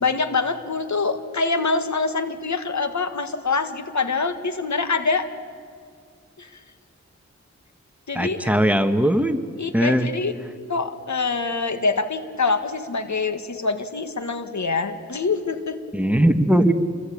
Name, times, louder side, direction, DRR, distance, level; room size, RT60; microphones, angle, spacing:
voice 1, 0.0-5.3 6.4-6.5 8.1-8.5 9.6-10.3 10.7-15.8, left 4 dB, 75° left, 9 dB, 1.8 m, -25 dB
voice 2, 8.2-9.4 9.7-10.1 15.9-16.7, right 1 dB, 5° right, 7 dB, 1.7 m, -19 dB
28.5 x 23.5 x 8.7 m, 2.1 s
cardioid pair, 50°, 29 cm